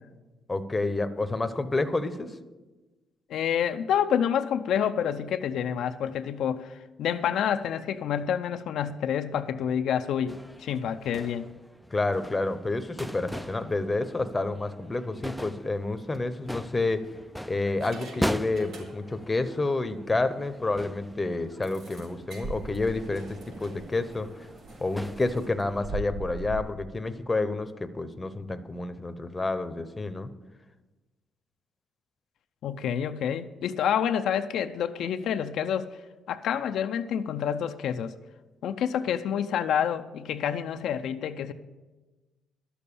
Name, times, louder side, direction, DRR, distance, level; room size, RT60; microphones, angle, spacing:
voice 1, 0.5-2.3 11.9-17.0 17.5-24.5 24.8-30.3, left 2 dB, 20° left, 10 dB, 0.8 m, -29 dB
voice 2, 3.3-11.5 32.6-36.0 36.3-38.1 38.6-41.5, left 8 dB, 75° left, 7 dB, 0.5 m, -28 dB
sound 1, 10.3-25.9, equal, ahead, 0.4 m, -40 dB
sound 2, 15.6-15.8 16.5-17.2 17.7-19.3 19.6-19.8 20.2-20.3 20.6-20.7 21.6-26.6, right 2 dB, 75° right, 4.4 m, -42 dB
11.5 x 7.0 x 8.5 m, 1.2 s
cardioid pair, 90°, 0 cm